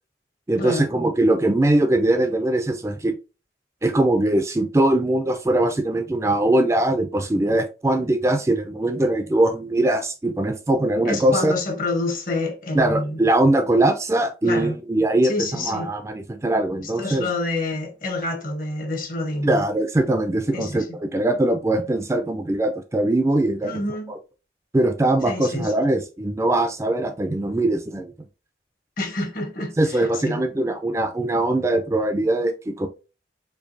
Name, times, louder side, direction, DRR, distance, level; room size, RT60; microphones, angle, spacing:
voice 1, 0.5-3.1 3.8-11.5 12.7-17.3 19.4-23.7 24.7-28.1 29.8-32.9, right 1 dB, 15° right, 0.3 m, -21 dB
voice 2, 11.0-13.2 14.4-14.8 15.2-15.9 17.0-19.6 20.5-20.9 23.6-24.1 25.2-25.7 29.0-30.4, left 2 dB, 50° left, 0.9 m, -28 dB
4.4 x 2.7 x 2.6 m
head